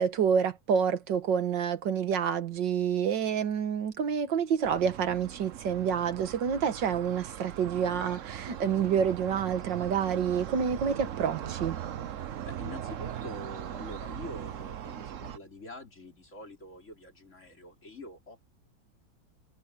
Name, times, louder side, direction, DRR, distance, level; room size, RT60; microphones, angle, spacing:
voice 1, 0.0-11.8, right 7 dB, 75° right, 2.0 m, -28 dB
sound 1, 4.6-15.4, right 10 dB, 55° right, 1.0 m, -40 dB
voice 2, 12.4-18.4, left 1 dB, 40° left, 4.4 m, -45 dB
omnidirectional pair, 2.0 m